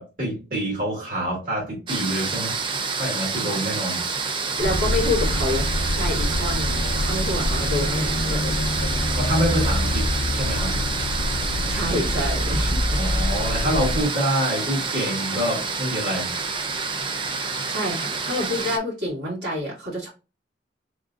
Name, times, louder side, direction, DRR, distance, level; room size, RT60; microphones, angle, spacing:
voice 1, 0.0-2.6 2.9-4.0 9.2-10.0 10.3-10.8 13.0-16.3, equal, 50° right, 2.1 m, -26 dB
sound 1, 1.9-18.8, right 4 dB, 25° right, 0.4 m, -28 dB
sound 2, 4.6-14.0, left 1 dB, 75° left, 0.5 m, -25 dB
voice 2, 4.6-8.8 11.7-13.0 17.7-20.1, left 1 dB, 65° right, 2.2 m, -28 dB
3.8 x 3.7 x 2.4 m
head